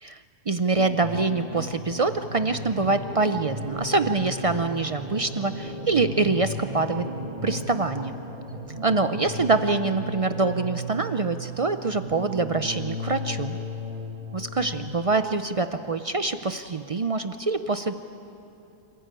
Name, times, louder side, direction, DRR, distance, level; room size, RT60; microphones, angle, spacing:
voice 1, 0.0-7.1 7.4-8.1 8.8-13.6 14.3-17.9, right 3 dB, 55° right, 9 dB, 0.4 m, -25 dB
sound 1, 0.8-14.9, left 1 dB, 25° right, 2.3 m, -35 dB
27.5 x 15.0 x 9.0 m, 2.8 s
omnidirectional pair, 1.4 m